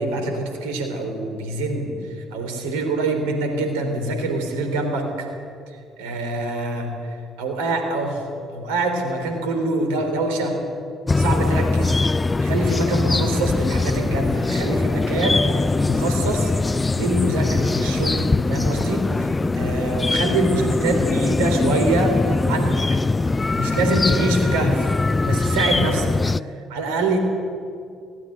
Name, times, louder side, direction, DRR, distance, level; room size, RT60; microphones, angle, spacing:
voice 1, 0.0-5.3 6.0-8.2 8.5-10.5 11.2-12.0 12.4-16.5 16.9-22.8 23.6-24.9 25.2-26.1 26.7-27.2, right 2 dB, 70° right, 4 dB, 3.6 m, -25 dB
sound 1, 11.1-26.4, left 3 dB, 20° left, 0.4 m, -21 dB
20.0 x 17.0 x 7.8 m, 2.3 s
figure-of-eight pair, 45°, 0 cm